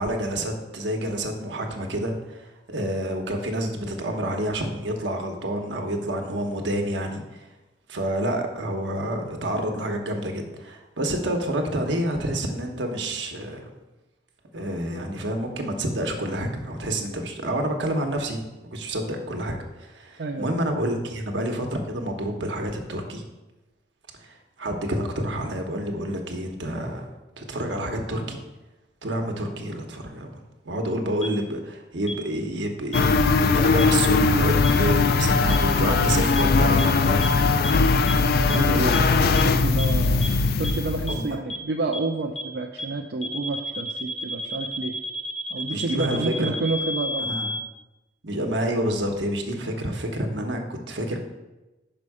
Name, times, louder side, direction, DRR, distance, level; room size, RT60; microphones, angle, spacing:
voice 1, 0.0-7.4 7.9-13.7 14.5-23.2 24.2-27.1 27.4-28.4 29.0-30.4 30.6-37.3 38.4-39.3 41.1-41.4 45.7-46.6 47.2-47.5 48.2-51.2, right 1 dB, 80° right, 3 dB, 1.0 m, -28 dB
voice 2, 20.2-20.6 38.2-38.8 39.2-45.0 45.5-47.3, right 3 dB, 60° right, 2 dB, 0.4 m, -30 dB
sound 1, 31.2-31.3 32.1-32.2 32.9-33.0 33.8-33.9 34.6-34.7 35.5-35.6 36.4-36.5 36.8-36.9 37.2-37.3 37.6-37.7 38.1-38.2 38.5-38.6 38.9-39.0 39.4-39.5 39.8-39.9 40.2-40.3 40.6-40.7 41.1-41.2 41.5-41.6 41.9-42.0 42.4-42.5 42.8-42.9 43.2-47.6, left 1 dB, 35° left, 0.7 m, -31 dB
sound 2, 32.9-41.3, left 4 dB, 55° left, 0.3 m, -20 dB
5.4 x 5.4 x 4.8 m, 1.0 s
head